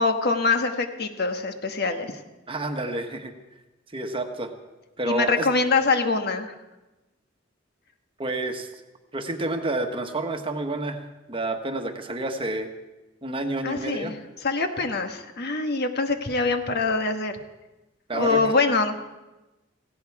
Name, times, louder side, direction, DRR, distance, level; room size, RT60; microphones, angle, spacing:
voice 1, 0.0-2.2 5.1-6.5 13.6-14.2 14.4-17.4 18.1-19.0, left 3 dB, 55° left, 6 dB, 1.3 m, -24 dB
voice 2, 2.5-3.3 3.9-4.5 5.0-5.5 8.2-8.7 9.1-12.7 13.2-14.2 18.1-18.5, right 2 dB, 30° right, 5 dB, 1.3 m, -29 dB
17.5 x 16.5 x 4.7 m, 1.1 s
head